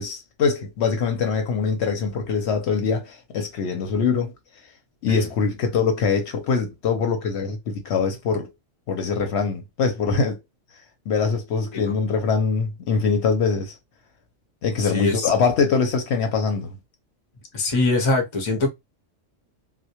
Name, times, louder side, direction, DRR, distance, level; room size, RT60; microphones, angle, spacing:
voice 1, 0.0-4.3 5.0-8.5 8.9-10.4 11.1-13.7 14.6-16.8, left 5 dB, 65° left, 0.8 m, -23 dB
voice 2, 14.8-15.3 17.5-18.7, left 2 dB, 35° left, 0.5 m, -23 dB
2.1 x 2.1 x 2.7 m
omnidirectional pair, 1.3 m